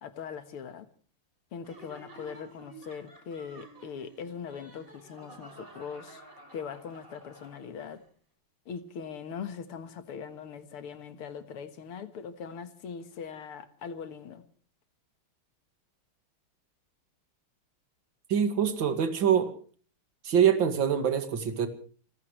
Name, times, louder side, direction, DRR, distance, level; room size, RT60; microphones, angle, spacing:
voice 1, 0.0-0.9 1.5-6.2 6.5-8.0 8.7-14.4, left 6 dB, 80° left, 2.4 m, -41 dB
Laughter, 1.6-8.0, right 2 dB, 25° right, 3.9 m, -51 dB
voice 2, 18.3-19.5 20.2-21.7, right 8 dB, 60° right, 2.7 m, -24 dB
30.0 x 15.0 x 3.2 m
omnidirectional pair, 2.4 m